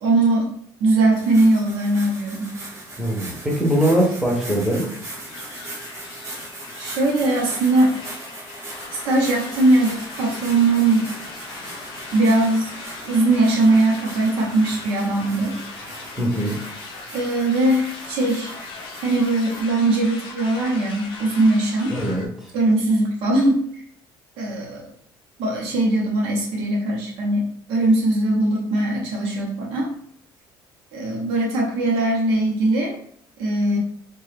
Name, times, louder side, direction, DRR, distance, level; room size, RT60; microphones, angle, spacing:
voice 1, 0.0-0.5 0.8-2.5 6.8-8.0 8.9-11.1 12.1-12.7 13.1-15.5 17.1-18.5 19.0-21.9 22.5-23.8 24.4-24.8 25.4-29.9 30.9-33.0 33.4-33.8, right 2 dB, 85° right, -2 dB, 0.8 m, -20 dB
sound 1, 1.1-19.6, right 1 dB, 35° right, 0.8 m, -39 dB
voice 2, 3.0-4.9 16.2-16.6 21.9-22.5, right 1 dB, 5° right, -2 dB, 0.6 m, -22 dB
sound 2, 4.6-22.3, left 3 dB, 60° left, 0.5 m, -39 dB
2.8 x 2.2 x 3.2 m, 0.65 s
cardioid pair, 180°, 9 cm